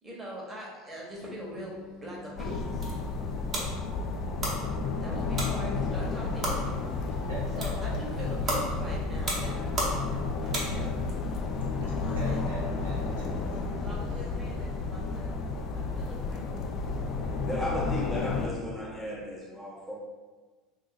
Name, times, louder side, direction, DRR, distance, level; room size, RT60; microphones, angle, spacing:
voice 1, 0.0-1.7 2.0-2.9 5.0-6.7 7.1-7.3 7.6-10.9 12.0-12.4 13.8-15.4 15.7-17.0, right 1 dB, 20° right, -4 dB, 1.1 m, -42 dB
sound 1, 1.1-6.6, left 4 dB, 70° left, 0.8 m, -47 dB
sound 2, 2.4-18.5, left 4 dB, 50° left, 0.4 m, -32 dB
sound 3, 2.5-11.1, right 1 dB, 40° right, 1.0 m, -36 dB
voice 2, 7.1-8.2 11.8-13.6 17.9-18.3, right 1 dB, 80° right, -4 dB, 0.9 m, -41 dB
voice 3, 17.4-20.0, left 1 dB, ahead, -5 dB, 0.9 m, -35 dB
2.7 x 2.6 x 3.7 m, 1.4 s
hypercardioid pair, 85°, 0 cm